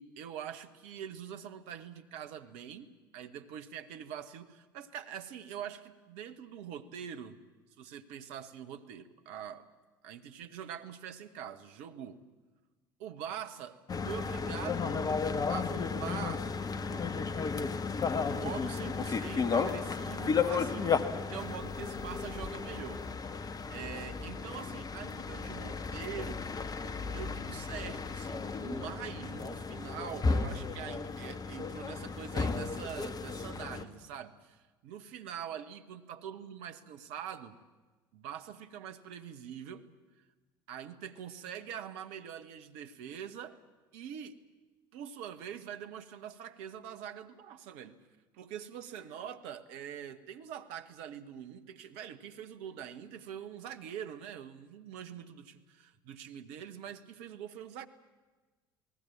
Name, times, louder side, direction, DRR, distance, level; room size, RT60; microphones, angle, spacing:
voice 1, 0.0-2.9 3.1-7.4 7.8-9.7 10.0-12.2 13.0-13.8 14.0-15.1 15.5-17.1 18.3-23.0 23.4-26.5 27.1-37.5 38.1-39.8 40.7-43.6 43.9-44.4 44.9-48.0 48.3-57.9, right 9 dB, 65° right, 10 dB, 1.5 m, -44 dB
sound 1, 13.9-33.8, left 5 dB, 35° left, 1.9 m, -34 dB
28.5 x 19.5 x 7.3 m, 1.3 s
figure-of-eight pair, 60°, 12 cm